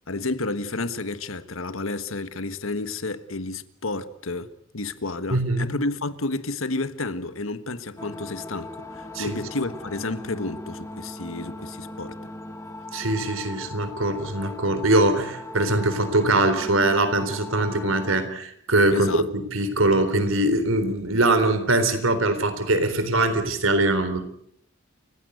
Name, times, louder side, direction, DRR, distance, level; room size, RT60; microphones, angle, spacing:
voice 1, 0.1-12.2 18.9-19.3, left 2 dB, 90° left, 1.5 m, -31 dB
voice 2, 5.3-5.7 9.1-9.4 12.9-24.3, right 2 dB, 80° right, 3.8 m, -22 dB
sound 1, 8.0-18.2, left 2 dB, 15° left, 1.8 m, -39 dB
30.0 x 16.0 x 8.1 m
head